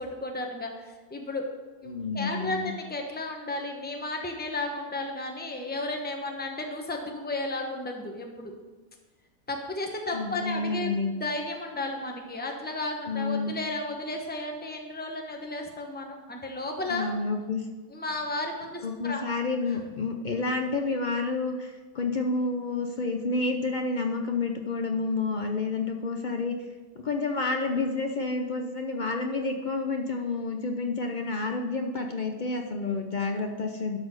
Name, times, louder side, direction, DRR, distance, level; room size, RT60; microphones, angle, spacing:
voice 1, 0.0-1.5 1.8-8.5 9.5-17.1 17.9-19.2, left 2 dB, 10° left, 2 dB, 0.9 m, -33 dB
voice 2, 1.8-2.7 10.1-11.1 13.1-13.5 16.9-17.7 18.8-26.6 27.0-34.0, left 3 dB, 50° left, 4 dB, 0.6 m, -29 dB
12.0 x 4.1 x 6.5 m, 1.3 s
omnidirectional pair, 1.6 m